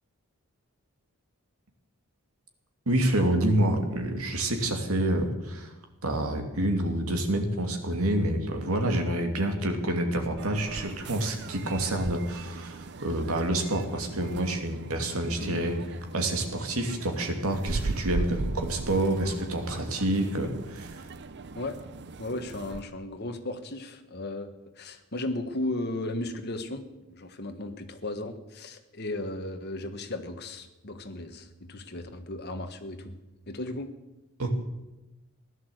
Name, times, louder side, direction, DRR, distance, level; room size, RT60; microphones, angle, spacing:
voice 1, 2.9-5.7 6.0-15.8 16.1-21.0 34.4-34.5, right 1 dB, 70° right, 4 dB, 2.6 m, -28 dB
Subway Kyoto interior, 10.4-22.8, right 3 dB, 50° right, 0.7 m, -38 dB
voice 2, 22.2-26.8 27.1-33.2 33.5-33.9, left 2 dB, 45° left, 6 dB, 1.5 m, -35 dB
16.5 x 11.0 x 8.0 m, 1.0 s
head